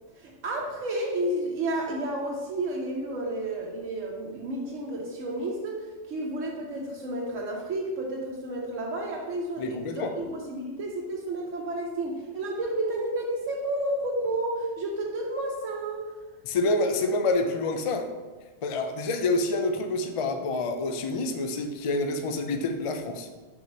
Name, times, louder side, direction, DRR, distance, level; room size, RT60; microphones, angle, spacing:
voice 1, 0.2-16.1, right 1 dB, 80° right, -3 dB, 1.2 m, -31 dB
voice 2, 9.6-10.1 16.4-18.1 18.6-23.3, left 2 dB, 60° left, 6 dB, 0.3 m, -27 dB
4.8 x 4.0 x 5.2 m, 1.3 s
omnidirectional pair, 1.3 m